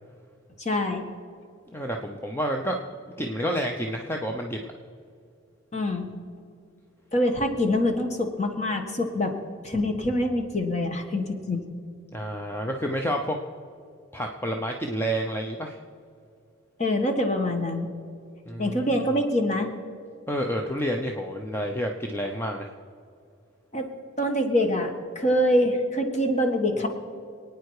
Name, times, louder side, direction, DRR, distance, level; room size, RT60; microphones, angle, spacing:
voice 1, 0.6-1.1 5.7-6.1 7.1-9.3 9.6-11.6 16.8-17.9 18.6-19.7 23.7-23.9 24.2-26.9, left 1 dB, 35° left, 4 dB, 1.6 m, -25 dB
voice 2, 1.7-4.6 12.1-13.4 14.1-15.8 18.5-18.8 20.3-22.7, equal, 10° left, 2 dB, 0.7 m, -29 dB
26.5 x 9.4 x 4.8 m, 2.4 s
head